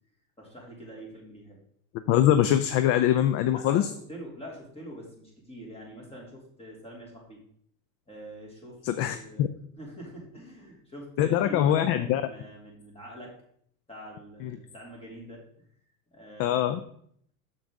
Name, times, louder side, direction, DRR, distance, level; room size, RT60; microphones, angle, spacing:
voice 1, 0.4-1.6 3.5-3.8 4.1-7.4 8.1-8.8 9.1-9.5 9.8-13.3 13.9-15.4 16.1-16.8, equal, 15° left, -2 dB, 3.1 m, -44 dB
voice 2, 2.1-3.9 8.8-9.5 11.2-12.2 14.4-14.5 16.4-16.8, left 11 dB, 35° left, 11 dB, 0.4 m, -23 dB
7.0 x 6.8 x 3.7 m, 0.65 s
hypercardioid pair, 90°, 46 cm